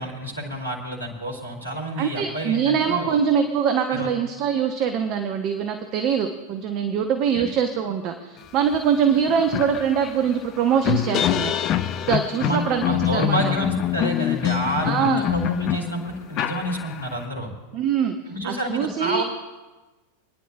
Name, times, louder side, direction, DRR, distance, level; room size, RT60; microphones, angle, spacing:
voice 1, 0.0-3.1 3.9-4.1 7.3-7.5 12.4-17.5 18.3-19.2, right 1 dB, 85° left, 1 dB, 2.7 m, -29 dB
voice 2, 2.0-11.5 11.8-13.4 14.8-15.3 17.7-18.2 18.4-19.2, right 7 dB, 40° right, 6 dB, 0.9 m, -23 dB
sound 1, 8.7-8.8 9.2-17.2, left 12 dB, 35° left, 0.5 m, -25 dB
28.5 x 10.5 x 2.4 m, 1.2 s
figure-of-eight pair, 90°, 0 cm